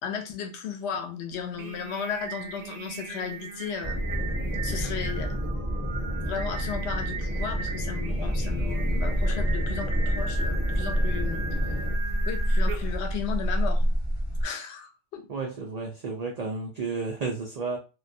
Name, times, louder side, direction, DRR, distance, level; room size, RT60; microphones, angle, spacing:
voice 1, 0.0-4.0 4.6-5.3 6.3-11.4 12.3-13.9 14.4-15.2, left 7 dB, 70° left, 0.8 m, -35 dB
Singing, 1.4-13.1, right 5 dB, 60° right, 0.6 m, -38 dB
sound 1, 3.8-12.0, equal, 15° left, 0.8 m, -30 dB
sound 2, 8.1-14.4, equal, 40° left, 0.4 m, -27 dB
voice 2, 15.3-17.8, right 4 dB, 90° right, 0.3 m, -32 dB
2.2 x 2.1 x 2.5 m
omnidirectional pair, 1.2 m